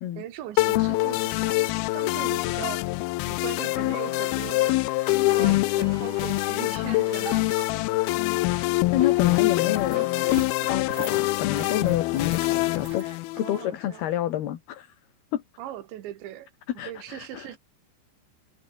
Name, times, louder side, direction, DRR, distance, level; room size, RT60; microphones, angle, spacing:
voice 1, 0.2-2.9 3.2-4.8 5.2-7.4 13.4-14.1 15.6-16.5 16.9-17.6, right 12 dB, 85° right, 4.1 m, -39 dB
sound 1, 0.6-13.6, left 21 dB, 90° left, 2.2 m, -24 dB
sound 2, 3.7-13.2, right 5 dB, 60° right, 0.8 m, -43 dB
voice 2, 8.9-10.1 10.7-13.1 13.4-14.9 15.3-15.4 16.8-17.5, left 12 dB, 65° left, 3.7 m, -29 dB
omnidirectional pair, 5.0 m